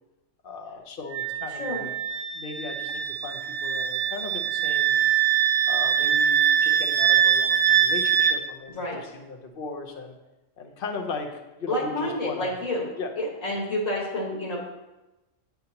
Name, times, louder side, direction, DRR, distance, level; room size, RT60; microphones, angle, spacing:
voice 1, 0.4-1.9 2.3-4.9 5.7-8.8 9.1-10.2 10.6-12.5 13.0-13.1 13.5-13.6, left 4 dB, 50° left, 4 dB, 0.9 m, -37 dB
Wind instrument woodwind instrument, 1.1-8.4, right 9 dB, 70° right, 0.8 m, -23 dB
voice 2, 11.7-12.9 13.2-14.6, left 1 dB, 85° left, -4 dB, 1.9 m, -29 dB
9.2 x 5.3 x 2.9 m, 1.0 s
omnidirectional pair, 1.3 m